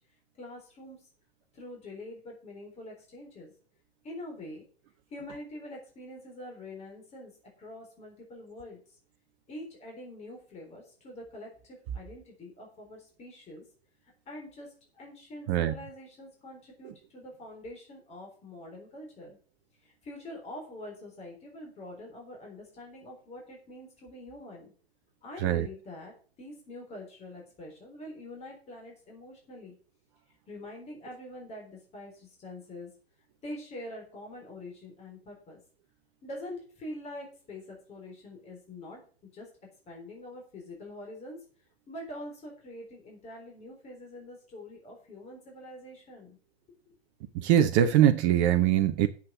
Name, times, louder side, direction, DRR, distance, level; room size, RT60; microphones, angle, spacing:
voice 1, 0.4-1.0 1.5-3.5 4.0-4.6 5.1-7.3 7.6-8.8 9.5-13.6 14.3-19.4 19.8-24.7 25.2-26.1 26.4-29.7 30.5-32.9 33.4-35.6 36.2-39.0 39.3-39.5 39.9-41.4 41.9-46.4 46.9-47.0, left 1 dB, 20° left, 3.8 m, -45 dB
voice 2, 47.3-49.1, right 11 dB, 30° right, 0.7 m, -22 dB
7.7 x 7.2 x 7.3 m
figure-of-eight pair, 110°, 32 cm